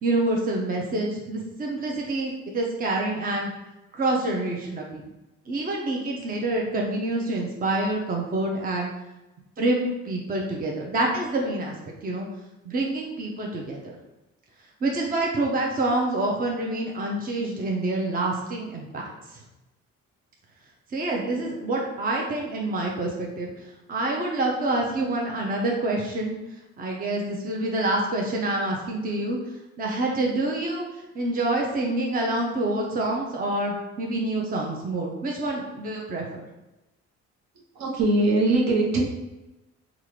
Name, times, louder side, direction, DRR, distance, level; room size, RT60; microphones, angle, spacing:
voice 1, 0.0-3.5 3.9-5.0 5.5-8.9 9.6-11.7 12.0-12.3 12.6-14.0 14.8-19.1 20.9-26.4 26.8-29.4 29.8-36.5, right 2 dB, 30° right, -1 dB, 0.6 m, -27 dB
voice 2, 37.7-39.0, right 2 dB, 65° right, -2 dB, 1.1 m, -21 dB
3.6 x 2.4 x 3.1 m, 1.0 s
cardioid pair, 90°, 30 cm